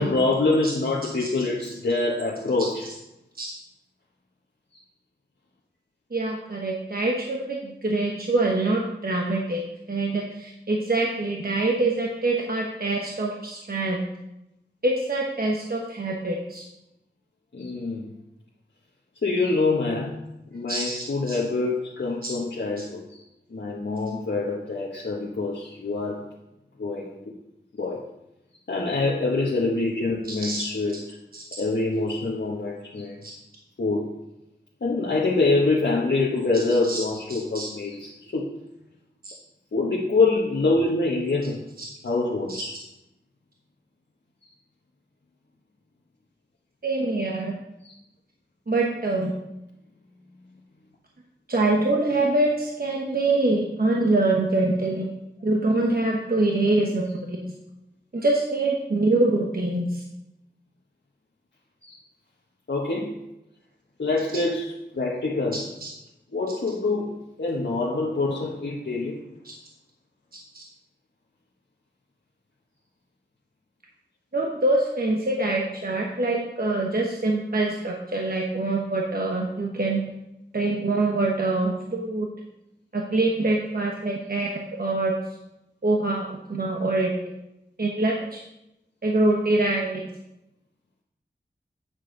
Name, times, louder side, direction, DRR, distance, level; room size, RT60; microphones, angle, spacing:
voice 1, 0.0-2.9 17.5-18.1 19.2-20.1 20.5-23.2 23.5-26.3 26.8-27.3 27.7-28.1 28.7-31.0 31.6-33.2 33.8-34.1 34.8-38.6 39.7-41.6 42.0-42.7 47.8-47.9 61.8-62.0 62.7-63.2 64.0-65.6 66.3-69.2, left 3 dB, 80° left, -3 dB, 1.1 m, -25 dB
voice 2, 6.1-9.6 9.9-14.1 14.8-16.6 20.7-21.4 22.2-22.3 30.2-30.7 31.3-31.4 33.2-33.3 36.5-37.0 37.3-37.7 39.2-39.3 41.8-41.9 42.5-42.6 46.8-47.5 48.7-49.3 51.5-55.1 55.4-57.5 58.1-60.0 65.5-65.9 69.4-69.5 70.5-70.6 74.3-80.0 80.5-82.3 82.9-85.1 85.8-87.1 87.8-88.4 89.0-90.0, right 2 dB, 55° right, -1 dB, 1.1 m, -25 dB
9.0 x 6.9 x 3.8 m, 0.88 s
wide cardioid pair, 50°, 18 cm